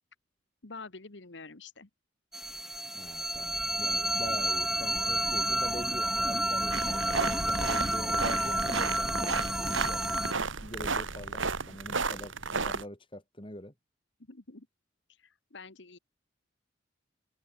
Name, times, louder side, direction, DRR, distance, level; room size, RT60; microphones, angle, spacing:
voice 1, 0.6-1.9 14.3-14.7 15.2-16.0, left 4 dB, 65° left, 1.4 m, -47 dB
sound 1, 2.3-10.3, right 1 dB, ahead, 0.6 m, -30 dB
voice 2, 2.9-13.7, left 1 dB, 25° left, 2.9 m, -44 dB
sound 2, 6.7-12.8, right 4 dB, 80° right, 2.2 m, -33 dB
head